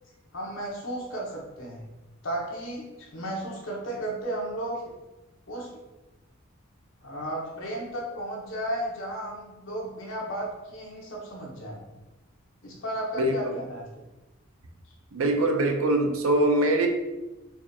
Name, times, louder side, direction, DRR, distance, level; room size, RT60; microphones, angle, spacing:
voice 1, 0.3-1.9 2.2-4.8 5.5-5.7 7.0-11.8 12.6-14.0, right 1 dB, 65° left, -2 dB, 0.9 m, -34 dB
voice 2, 13.2-13.6 15.1-16.9, right 1 dB, 80° right, 4 dB, 0.5 m, -23 dB
4.7 x 2.4 x 2.7 m, 1.1 s
head